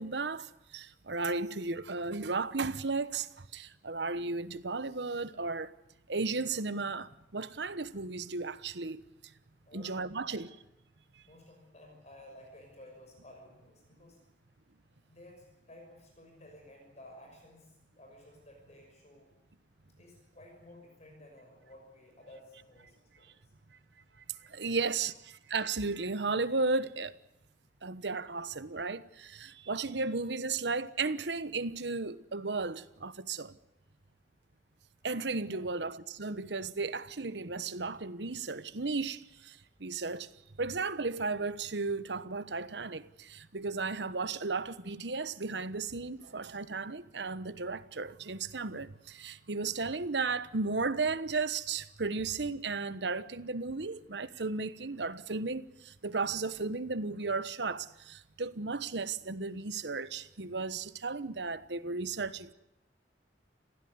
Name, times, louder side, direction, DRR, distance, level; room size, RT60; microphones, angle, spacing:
voice 1, 0.0-5.7 6.1-9.1 9.7-10.5 24.4-25.1 25.5-27.2 27.8-33.5 35.0-40.3 40.6-62.5, right 3 dB, 80° right, 1.2 m, -34 dB
voice 2, 9.7-10.4 11.2-14.2 15.1-19.3 20.0-23.5 24.5-25.0 29.9-30.0 35.2-35.6, left 1 dB, 40° left, 6.1 m, -55 dB
26.0 x 16.5 x 9.6 m
head